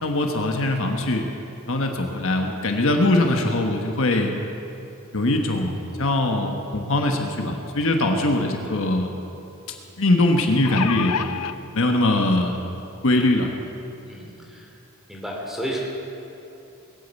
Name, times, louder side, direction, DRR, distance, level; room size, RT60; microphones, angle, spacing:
voice 1, 0.0-1.2 1.7-4.3 5.1-9.1 10.0-11.2 11.7-12.7 13.0-13.5, left 2 dB, 65° left, 3 dB, 1.3 m, -21 dB
sound 1, 8.2-8.3 8.7-8.8 10.3-11.5 12.5-12.6 13.0-13.1, left 7 dB, 90° left, 0.6 m, -28 dB
voice 2, 14.0-14.7 15.1-15.8, equal, ahead, -3 dB, 3.1 m, -33 dB
20.5 x 8.6 x 8.3 m, 2.9 s
head